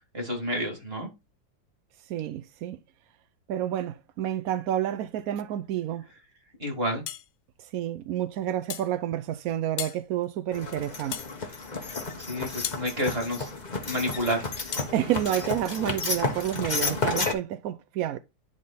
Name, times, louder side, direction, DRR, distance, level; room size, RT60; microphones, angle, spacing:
voice 1, 0.1-1.1 6.6-7.0 12.3-13.5 13.8-14.4, equal, 30° right, 2.6 m, -29 dB
voice 2, 2.1-2.8 3.5-6.1 7.6-11.2 14.9-18.2, right 11 dB, 80° right, 0.8 m, -29 dB
sound 1, 7.1-7.3 8.7-8.9 9.8-10.0 11.1-11.3 12.6-12.9 14.7-14.9, left 11 dB, 65° left, 1.0 m, -34 dB
sound 2, 10.5-17.3, left 3 dB, 30° left, 1.1 m, -32 dB
11.0 x 3.7 x 4.1 m
omnidirectional pair, 2.1 m